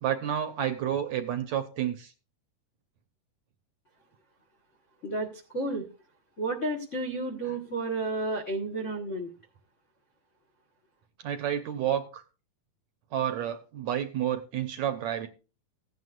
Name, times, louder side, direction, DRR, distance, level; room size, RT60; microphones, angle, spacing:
voice 1, 0.0-2.1 7.4-7.6 11.2-12.2 13.1-15.3, right 10 dB, 75° right, 8 dB, 1.8 m, -30 dB
voice 2, 5.0-5.9 6.4-9.3, right 2 dB, 70° left, 1 dB, 0.7 m, -31 dB
16.0 x 9.5 x 2.5 m, 0.33 s
omnidirectional pair, 3.9 m